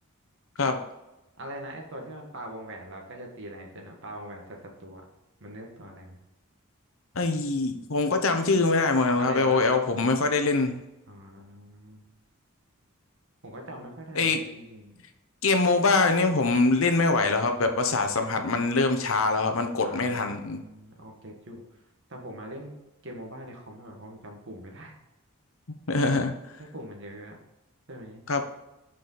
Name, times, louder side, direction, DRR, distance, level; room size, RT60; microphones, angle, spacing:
voice 1, 1.4-5.0 5.4-6.2 9.1-9.6 11.1-12.0 13.4-15.0 19.8-21.8 22.1-22.7 23.0-24.9 26.6-27.4 27.9-28.2, right 1 dB, 60° right, 2 dB, 1.5 m, -42 dB
voice 2, 7.2-10.8 14.2-14.4 15.4-20.6 25.9-26.3 28.3-28.4, left 3 dB, 65° left, 6 dB, 0.9 m, -23 dB
6.7 x 5.1 x 4.0 m, 0.96 s
head